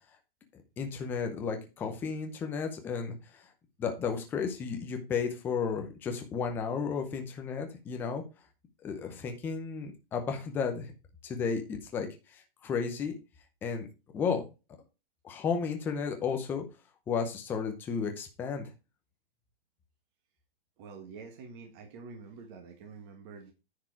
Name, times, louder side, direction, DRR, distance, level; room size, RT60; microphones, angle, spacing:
voice 1, 0.8-3.1 3.8-8.2 8.8-10.9 11.2-13.2 13.6-13.9 14.1-14.4 15.2-16.6 17.1-18.7, left 6 dB, 5° left, 4 dB, 0.6 m, -33 dB
voice 2, 20.8-23.5, right 4 dB, 25° right, 3 dB, 1.5 m, -47 dB
9.7 x 4.7 x 4.7 m, 0.29 s
hypercardioid pair, 170°, 29 cm